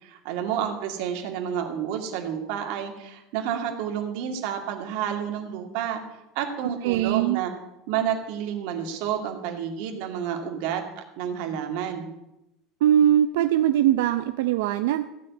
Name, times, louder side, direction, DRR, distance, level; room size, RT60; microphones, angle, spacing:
voice 1, 0.0-6.0 6.3-7.5 7.9-12.1, right 9 dB, 55° right, 3 dB, 2.3 m, -30 dB
voice 2, 6.6-7.5 12.8-15.0, right 11 dB, 85° right, 9 dB, 0.6 m, -21 dB
15.5 x 6.4 x 9.5 m, 0.92 s
cardioid pair, 180°, 0 cm